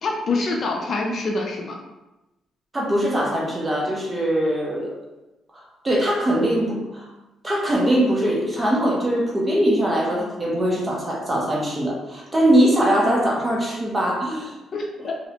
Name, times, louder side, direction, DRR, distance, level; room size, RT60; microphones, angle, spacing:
voice 1, 0.0-1.7 14.7-15.1, left 3 dB, 55° left, 0 dB, 0.4 m, -25 dB
voice 2, 2.7-4.9 5.8-7.1 7.4-14.5 15.0-15.3, right 1 dB, 20° right, -3 dB, 0.7 m, -21 dB
2.5 x 2.1 x 2.8 m, 1.0 s
cardioid pair, 90°, 0 cm